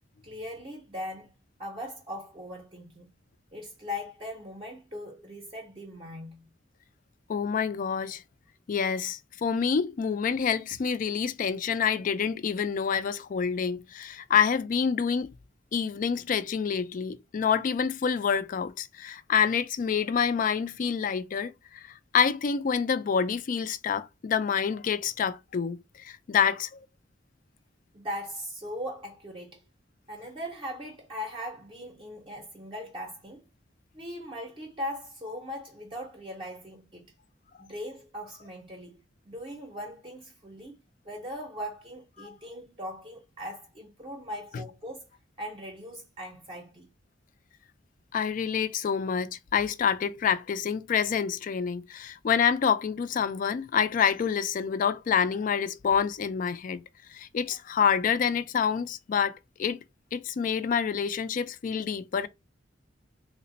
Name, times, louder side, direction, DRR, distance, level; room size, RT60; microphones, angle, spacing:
voice 1, 0.2-1.3 1.6-3.1 3.5-6.5 27.9-29.7 30.1-33.4 33.9-37.1 37.6-45.1 45.4-46.9, equal, 25° right, 0.6 m, -39 dB
voice 2, 7.3-8.2 8.7-15.3 15.7-26.8 42.2-42.3 44.5-44.6 48.1-56.8 57.1-59.8 60.1-62.3, left 7 dB, 45° left, 0.3 m, -27 dB
3.2 x 2.1 x 3.8 m
head